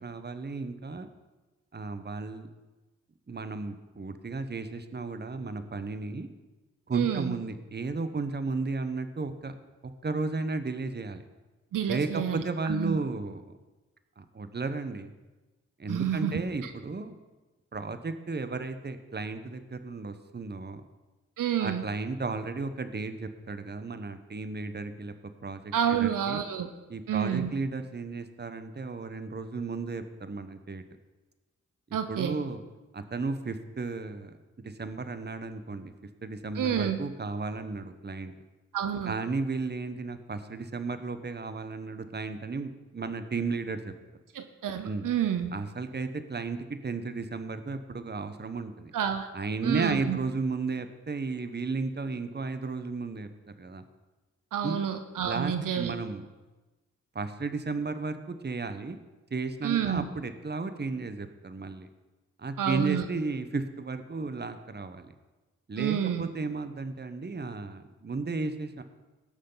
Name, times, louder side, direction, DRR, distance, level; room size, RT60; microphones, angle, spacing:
voice 1, 0.0-1.1 1.7-2.5 3.3-6.3 6.9-9.5 9.8-11.2 11.9-13.4 14.2-15.1 15.8-17.2 17.7-20.8 21.6-25.1 25.4-26.4 26.9-30.8 32.1-32.6 32.9-34.3 34.6-35.9 36.2-38.3 39.0-43.9 44.8-45.1 45.5-48.9 49.3-53.3 53.6-53.8 54.6-54.8 55.2-56.2 57.1-59.0 59.3-61.9 62.4-65.1 65.7-68.8, right 3 dB, 35° right, 10 dB, 1.1 m, -34 dB
voice 2, 6.9-7.4 11.7-13.0 15.9-16.7 21.4-21.8 25.7-26.7 27.1-27.5 31.9-32.4 36.5-37.0 38.7-39.1 44.3-45.5 48.9-49.3 49.6-50.2 54.5-56.0 59.6-60.0 62.6-63.1 65.8-66.3, right 9 dB, 85° right, 8 dB, 0.8 m, -29 dB
18.0 x 6.4 x 4.0 m, 1.2 s
cardioid pair, 50°, 31 cm